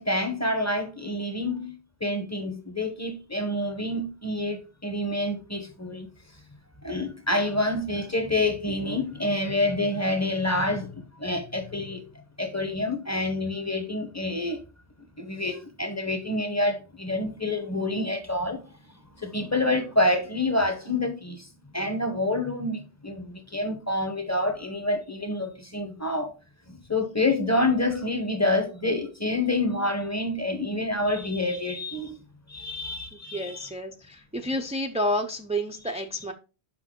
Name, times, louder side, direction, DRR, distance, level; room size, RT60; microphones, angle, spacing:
voice 1, 0.0-6.1 6.8-12.1 12.4-14.6 15.2-18.6 19.2-21.5 21.7-26.3 26.7-32.2 32.5-33.7, left 2 dB, 15° left, 0.7 m, -27 dB
voice 2, 33.3-36.3, equal, 10° right, 0.3 m, -30 dB
6.0 x 5.4 x 3.7 m
omnidirectional pair, 1.1 m